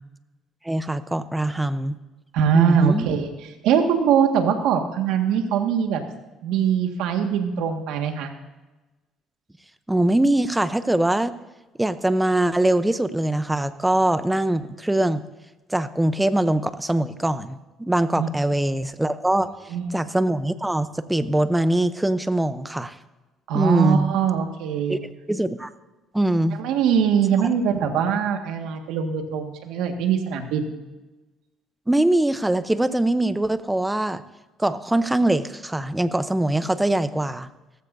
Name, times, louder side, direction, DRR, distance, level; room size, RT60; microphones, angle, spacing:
voice 1, 0.6-2.0 2.5-3.1 9.9-11.3 11.8-15.2 15.7-19.5 19.9-23.0 23.5-24.1 24.9-25.0 25.3-25.7 26.1-26.6 27.3-27.4 31.9-34.2 34.6-37.5, right 1 dB, 10° right, 12 dB, 0.7 m, -22 dB
voice 2, 2.3-3.3 3.6-6.0 6.4-8.3 18.2-18.3 19.7-19.9 23.5-25.0 26.6-30.8, right 7 dB, 85° right, 4 dB, 1.7 m, -22 dB
18.0 x 14.5 x 2.7 m, 1.1 s
cardioid pair, 115°, 0 cm